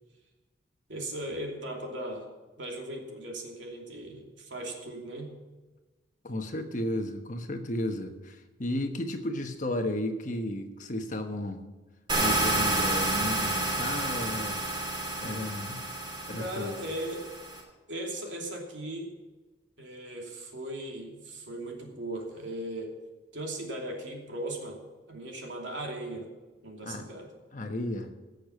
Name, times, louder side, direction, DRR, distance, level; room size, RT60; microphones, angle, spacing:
voice 1, 0.9-2.3 2.6-5.4 16.4-17.3 17.9-19.1 19.8-22.9 23.3-24.8 25.1-26.3 26.6-27.3, right 1 dB, 80° right, 1 dB, 2.8 m, -38 dB
voice 2, 6.2-11.7 12.2-14.6 15.2-15.8 16.3-16.8 26.8-27.1 27.5-28.1, left 1 dB, 45° left, 5 dB, 1.2 m, -33 dB
sound 1, 12.1-17.6, right 2 dB, 25° right, 2.8 m, -30 dB
17.5 x 6.8 x 6.1 m, 1.2 s
head